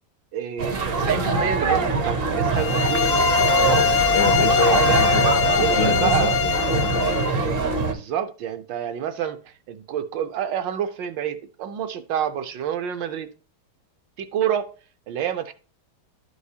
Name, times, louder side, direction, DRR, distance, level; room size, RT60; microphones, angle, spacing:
voice 1, 0.3-3.1 3.6-5.0 5.6-6.4 7.8-9.4 9.7-13.3 14.2-14.7 15.1-15.5, right 9 dB, 75° right, 1.3 m, -28 dB
sound 1, 0.6-7.9, right 4 dB, 50° right, 0.6 m, -23 dB
sound 2, 2.5-7.3, left 7 dB, 75° left, 0.9 m, -22 dB
voice 2, 4.1-7.4, left 3 dB, 60° left, 0.6 m, -28 dB
11.5 x 4.7 x 2.7 m
omnidirectional pair, 2.2 m